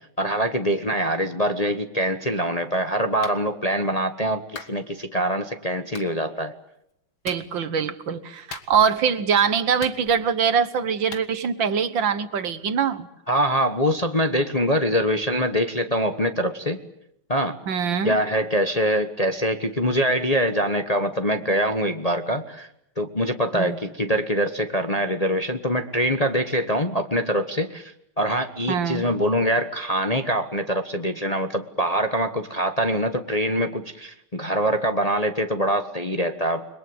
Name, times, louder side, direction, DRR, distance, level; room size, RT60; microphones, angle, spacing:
voice 1, 0.2-4.4 4.7-6.5 13.3-16.8 17.3-17.6 18.0-22.7 23.0-36.7, equal, 25° left, 7 dB, 1.1 m, -24 dB
Clapping, 3.2-3.4 4.6-4.8 5.9-6.1 7.2-7.5 8.5-9.0 9.8-10.4 11.1-11.3, left 6 dB, 70° left, 2.5 m, -38 dB
voice 2, 7.2-13.1 17.7-18.2 23.5-23.8 28.7-29.1, right 7 dB, 65° right, 12 dB, 1.9 m, -23 dB
29.5 x 22.5 x 7.9 m, 0.81 s
omnidirectional pair, 2.3 m